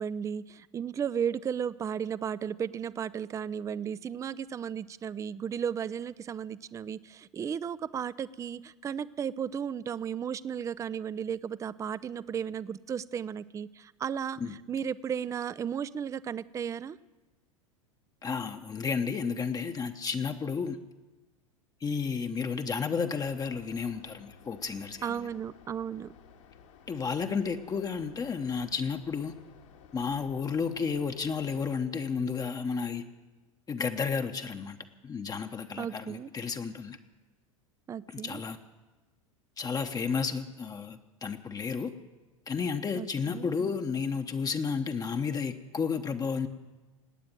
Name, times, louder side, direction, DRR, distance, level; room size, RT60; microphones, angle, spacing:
voice 1, 0.0-14.4 14.7-17.0 25.0-26.1 35.8-36.3 37.9-38.4 43.0-43.5, right 8 dB, 20° right, 18 dB, 0.4 m, -34 dB
voice 2, 18.2-20.8 21.8-25.3 26.9-29.4 29.9-33.0 33.7-34.8 35.0-37.0 38.1-38.6 39.6-41.9 42.5-46.5, left 5 dB, 20° left, 6 dB, 0.9 m, -32 dB
sound 1, 23.2-31.8, left 6 dB, 70° left, 2.0 m, -55 dB
18.5 x 8.8 x 8.9 m, 1.2 s
hypercardioid pair, 85°, 17 cm